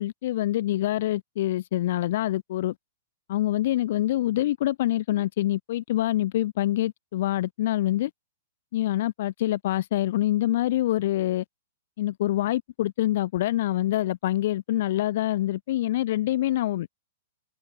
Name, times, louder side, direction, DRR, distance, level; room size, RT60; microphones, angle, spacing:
voice 1, 0.0-2.7 3.3-8.1 8.7-11.4 12.0-16.9, left 14 dB, 50° left, 4.6 m, -25 dB
hypercardioid pair, 170°, 0 cm